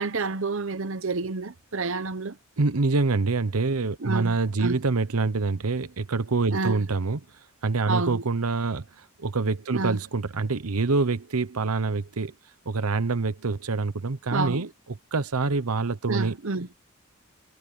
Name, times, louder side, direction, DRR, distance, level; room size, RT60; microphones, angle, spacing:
voice 1, 0.0-2.4 4.0-4.8 6.5-6.8 7.9-8.2 9.7-10.0 14.3-14.6 16.1-16.7, right 3 dB, 65° right, 0.9 m, -29 dB
voice 2, 2.6-7.2 7.6-12.3 12.7-16.4, right 3 dB, 85° right, 0.9 m, -26 dB
head